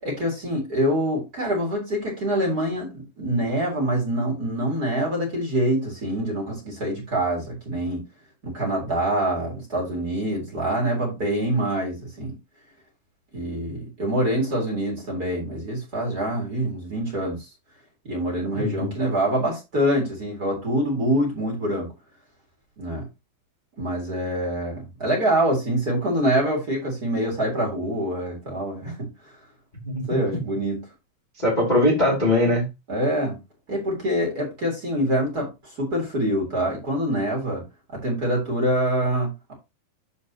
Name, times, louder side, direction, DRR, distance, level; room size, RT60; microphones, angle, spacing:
voice 1, 0.0-8.0 8.4-12.4 13.3-17.5 18.0-21.9 22.8-23.0 23.8-29.1 30.1-30.8 32.9-33.4 33.7-35.5 35.8-37.6 37.9-39.5, right 1 dB, 25° right, 3.9 m, -25 dB
voice 2, 18.5-18.9 29.8-30.2 31.4-32.7, left 1 dB, 15° left, 2.2 m, -21 dB
13.0 x 5.1 x 2.9 m
omnidirectional pair, 4.7 m